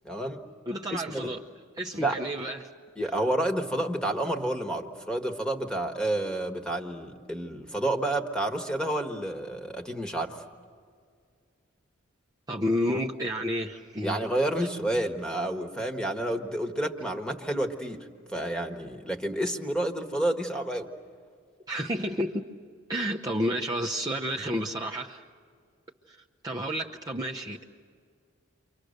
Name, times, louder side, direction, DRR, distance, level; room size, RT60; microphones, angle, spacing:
voice 1, 0.0-0.4 0.9-1.3 2.0-2.2 3.0-10.4 14.0-20.9, right 1 dB, 5° left, 5 dB, 1.5 m, -30 dB
voice 2, 0.7-1.4 1.8-2.7 3.0-3.1 12.5-14.3 21.7-22.5 22.9-25.2 26.1-27.7, equal, 20° right, -2 dB, 0.8 m, -31 dB
30.0 x 25.0 x 6.6 m, 2.1 s
head